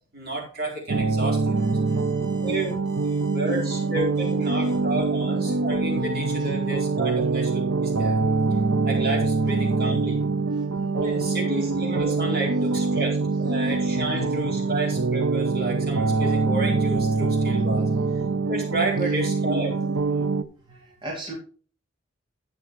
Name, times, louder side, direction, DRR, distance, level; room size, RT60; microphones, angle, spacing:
voice 1, 0.1-1.8 2.4-2.8 3.1-8.2 8.8-10.2 10.9-18.2 18.5-19.8, right 2 dB, 50° right, -2 dB, 4.5 m, -31 dB
sound 1, 0.9-20.4, right 3 dB, 90° right, 0.8 m, -24 dB
voice 2, 1.5-2.7 3.0-3.8 4.5-4.8 6.4-6.5 7.0-7.3 8.5-8.6 9.4-9.5 10.5-10.6 12.9-13.0 17.9-18.0 20.2-20.3 20.7-21.3, right 2 dB, 25° right, -2 dB, 2.5 m, -43 dB
12.0 x 8.3 x 3.1 m, 0.41 s
head